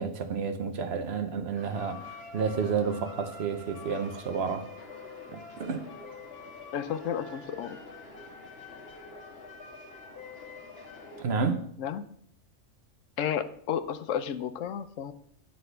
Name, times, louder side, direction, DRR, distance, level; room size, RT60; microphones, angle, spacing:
voice 1, 0.0-4.7 5.3-5.9 11.2-11.7, right 5 dB, 60° right, 1.0 m, -30 dB
sound 1, 1.6-11.2, left 3 dB, 50° left, 1.4 m, -46 dB
voice 2, 6.7-7.8 11.8-12.1 13.2-15.1, left 8 dB, 80° left, 1.0 m, -32 dB
9.7 x 4.1 x 6.7 m
omnidirectional pair, 1.3 m